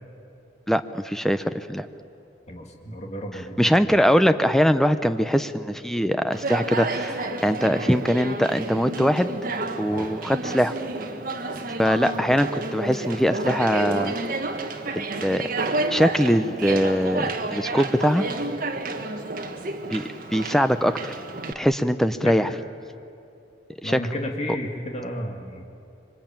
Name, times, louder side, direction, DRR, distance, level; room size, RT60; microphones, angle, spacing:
voice 1, 0.7-1.9 3.6-9.3 9.8-10.7 11.8-14.1 15.0-15.5 15.9-18.3 19.9-20.0 20.3-21.2 21.6-22.5 23.8-24.0, equal, ahead, 10 dB, 0.7 m, -22 dB
voice 2, 2.5-3.9 9.9-10.1 22.2-22.5 23.8-25.6, equal, 40° left, 2 dB, 2.3 m, -33 dB
Conversation, 6.3-21.5, right 2 dB, 50° right, 1.7 m, -30 dB
26.0 x 23.5 x 9.0 m, 2.6 s
head